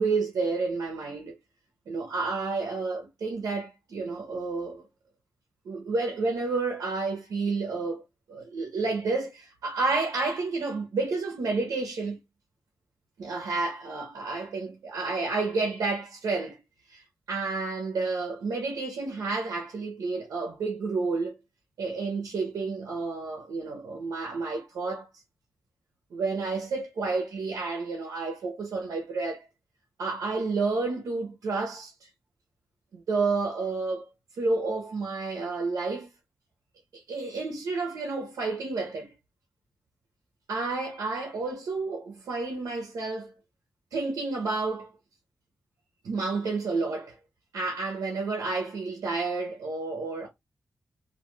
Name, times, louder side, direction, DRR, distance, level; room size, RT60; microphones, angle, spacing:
voice 1, 0.0-1.4 1.9-4.8 5.6-8.0 8.3-12.2 13.2-16.6 16.9-21.3 21.8-25.1 26.1-29.5 30.0-32.1 32.9-34.1 34.4-36.1 36.9-39.1 40.5-43.3 43.9-44.9 46.0-47.2 47.5-50.3, right 3 dB, 85° right, 0.7 m, -30 dB
2.3 x 2.2 x 3.0 m
cardioid pair, 45°, 6 cm